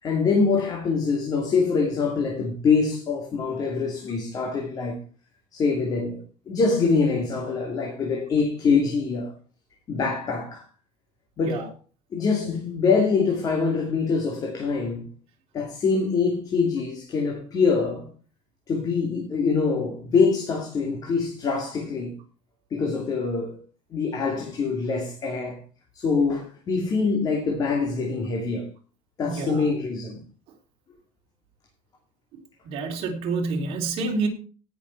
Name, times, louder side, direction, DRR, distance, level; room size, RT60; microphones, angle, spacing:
voice 1, 0.0-5.0 5.5-6.2 6.5-9.3 9.9-10.6 11.4-11.7 12.1-15.0 15.5-18.1 18.7-22.1 22.7-23.5 23.9-25.6 25.9-28.7 29.2-30.2, left 4 dB, 30° left, 2.7 m, -24 dB
voice 2, 29.2-29.7 32.6-34.3, right 4 dB, 50° right, 3.7 m, -28 dB
18.0 x 7.3 x 4.6 m
cardioid pair, 170°, 12 cm